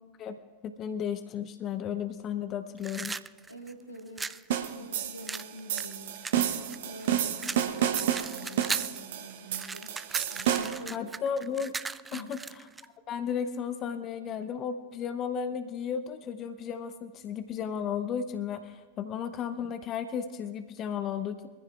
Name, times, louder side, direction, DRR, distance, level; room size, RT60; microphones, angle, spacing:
voice 1, 0.6-3.2 10.9-11.7 12.1-12.7 13.1-21.5, left 7 dB, 30° left, 9 dB, 0.7 m, -34 dB
sound 1, 2.8-4.4 5.3-7.1 7.4-9.0 9.3-12.9, right 4 dB, 10° right, 0.3 m, -37 dB
voice 2, 3.5-10.0 10.3-11.1 12.1-12.3, equal, 90° left, 2 dB, 1.7 m, -46 dB
sound 2, 4.5-10.9, right 10 dB, 55° right, 0.9 m, -30 dB
23.5 x 15.0 x 2.4 m, 1.4 s
figure-of-eight pair, 90°, 0 cm